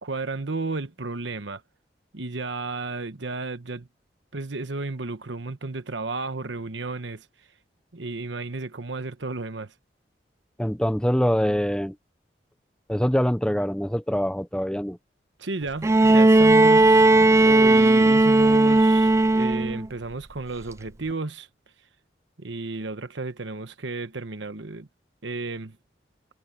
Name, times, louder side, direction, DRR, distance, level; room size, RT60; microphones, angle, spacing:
voice 1, 0.0-1.6 2.1-3.9 4.3-7.3 7.9-9.7 15.4-17.1 17.4-21.5 22.4-24.9 25.2-25.8, right 3 dB, 90° right, 1.2 m, -32 dB
voice 2, 10.6-11.9 12.9-15.0, equal, 5° left, 0.7 m, -24 dB
Bowed string instrument, 15.8-19.8 21.1-21.2, right 2 dB, 15° right, 0.3 m, -16 dB
head